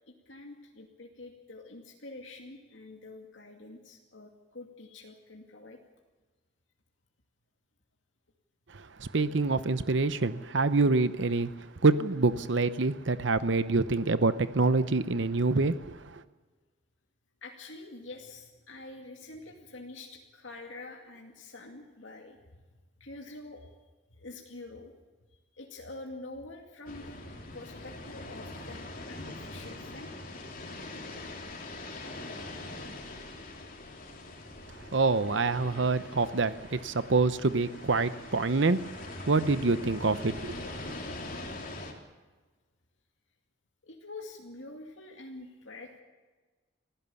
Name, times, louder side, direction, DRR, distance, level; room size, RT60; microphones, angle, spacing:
voice 1, 0.1-5.8 17.4-22.4 23.0-23.7 24.1-24.9 25.5-27.2 27.5-30.1 32.7-32.8 43.8-46.0, left 2 dB, 75° left, 1 dB, 2.4 m, -46 dB
voice 2, 9.0-11.5 11.8-16.2 34.9-38.8 39.3-40.8, right 3 dB, 65° right, 13 dB, 0.8 m, -26 dB
sound 1, 26.9-41.9, left 2 dB, 45° left, 3.4 m, -43 dB
25.5 x 16.0 x 7.1 m, 1.3 s
head